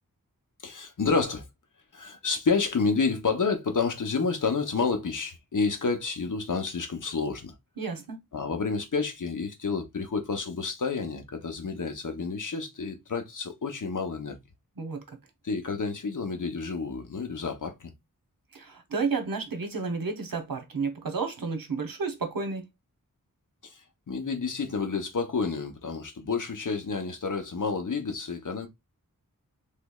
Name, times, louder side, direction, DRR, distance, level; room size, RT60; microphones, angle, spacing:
voice 1, 0.6-1.5 1.9-7.5 8.3-14.4 15.4-17.9 23.6-28.7, left 4 dB, 60° left, 0.9 m, -29 dB
voice 2, 7.8-8.2 14.8-15.0 18.5-22.6, right 4 dB, 70° right, 0.9 m, -31 dB
3.2 x 3.1 x 2.3 m
wide cardioid pair, 80°, 35 cm